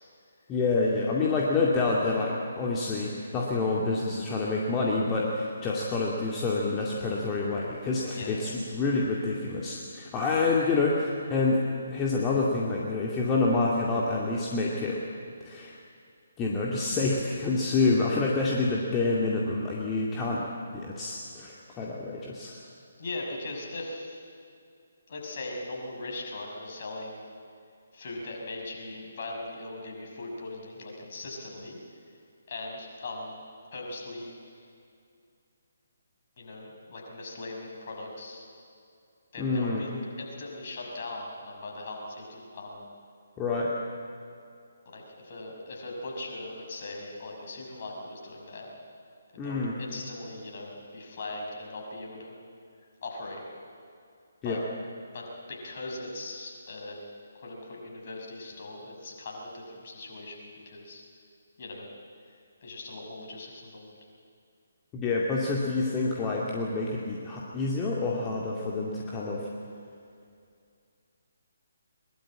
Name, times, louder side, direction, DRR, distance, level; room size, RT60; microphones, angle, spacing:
voice 1, 0.5-11.6 11.9-15.0 15.4-15.7 16.4-20.4 20.7-22.5 39.4-39.8 43.4-43.8 49.4-49.7 54.4-54.6 64.9-69.4, left 3 dB, 15° left, -4 dB, 2.3 m, -27 dB
voice 2, 8.1-8.5 23.0-24.2 25.1-27.2 27.9-31.8 32.5-33.4 33.7-34.4 36.4-38.4 39.3-42.9 44.9-48.7 49.3-52.3 53.0-53.5 54.4-54.6 55.1-57.0 57.3-61.0 61.6-61.9 62.6-63.9, left 2 dB, 45° left, 0 dB, 5.9 m, -39 dB
22.0 x 21.5 x 8.8 m, 2.4 s
figure-of-eight pair, 140°, 0 cm